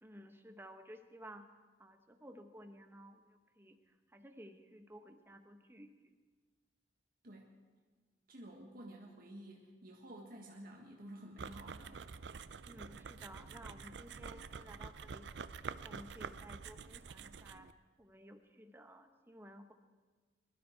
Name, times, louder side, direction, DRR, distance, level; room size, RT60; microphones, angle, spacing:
voice 1, 0.0-1.5 1.8-3.8 4.1-5.9 12.7-15.3 15.7-17.7 18.0-19.7, equal, 15° right, 6 dB, 1.0 m, -55 dB
voice 2, 8.3-12.0, right 1 dB, 55° right, 0 dB, 1.6 m, -52 dB
sound 1, 11.4-17.7, right 5 dB, 70° right, 0.5 m, -47 dB
22.0 x 12.5 x 4.5 m, 1.4 s
head